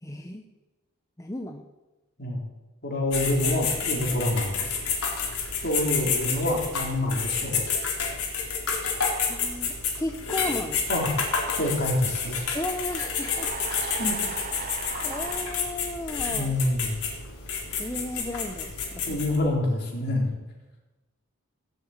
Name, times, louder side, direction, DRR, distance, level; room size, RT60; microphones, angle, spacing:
voice 1, 0.0-0.5 1.2-1.7 9.1-10.8 12.5-13.5 15.0-16.6 17.8-19.2, left 1 dB, 15° left, 5 dB, 0.7 m, -34 dB
voice 2, 2.8-4.8 5.6-7.6 10.9-12.5 13.8-14.2 16.2-16.9 19.1-20.3, left 1 dB, 45° left, -1 dB, 3.8 m, -27 dB
sound 1, 3.1-19.4, left 5 dB, 90° left, 3.8 m, -30 dB
sound 2, 13.3-15.5, right 5 dB, 35° right, 0.9 m, -37 dB
17.5 x 7.8 x 8.9 m, 1.1 s
head